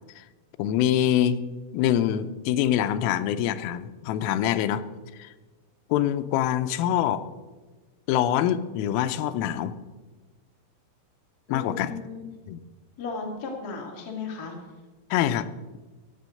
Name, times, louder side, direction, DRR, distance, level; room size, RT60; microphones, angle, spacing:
voice 1, 0.6-1.4 1.7-4.8 5.2-5.3 5.9-7.2 8.1-9.7 11.5-11.9 12.5-12.6 15.1-15.5, left 11 dB, 90° left, 12 dB, 3.3 m, -24 dB
voice 2, 11.5-12.2 13.0-14.5, left 4 dB, 45° left, 0 dB, 1.2 m, -35 dB
16.0 x 8.4 x 6.4 m, 1.3 s
omnidirectional pair, 5.7 m